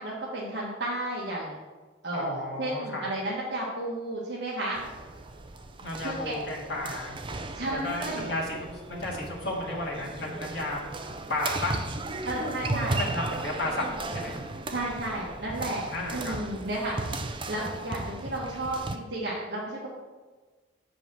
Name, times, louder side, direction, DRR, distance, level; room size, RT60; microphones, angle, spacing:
voice 1, 0.0-1.6 2.0-4.8 6.0-6.3 7.5-8.2 12.2-13.0 14.7-15.8 16.1-17.0 17.5-19.9, right 1 dB, 60° right, -6 dB, 1.6 m, -32 dB
voice 2, 2.1-3.1 5.8-7.1 7.7-10.8 11.3-11.8 12.9-13.9 14.1-14.3 15.9-16.4, left 1 dB, 60° left, -3 dB, 1.9 m, -33 dB
sound 1, 4.7-19.0, right 2 dB, 25° right, 0.5 m, -36 dB
7.1 x 5.3 x 6.2 m, 1.3 s
head